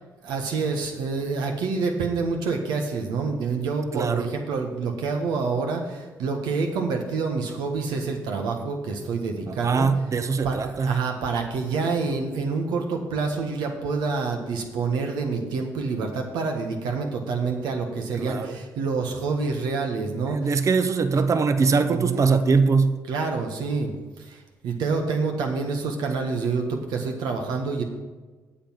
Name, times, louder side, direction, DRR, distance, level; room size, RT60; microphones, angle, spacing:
voice 1, 0.2-9.9 10.4-20.6 21.9-22.4 23.1-27.8, right 4 dB, 85° right, 3 dB, 1.5 m, -27 dB
voice 2, 3.9-4.3 9.5-11.0 18.2-18.6 20.3-23.0, right 4 dB, 45° right, 10 dB, 0.9 m, -22 dB
8.6 x 7.8 x 5.9 m, 1.3 s
supercardioid pair, 60°, 7 cm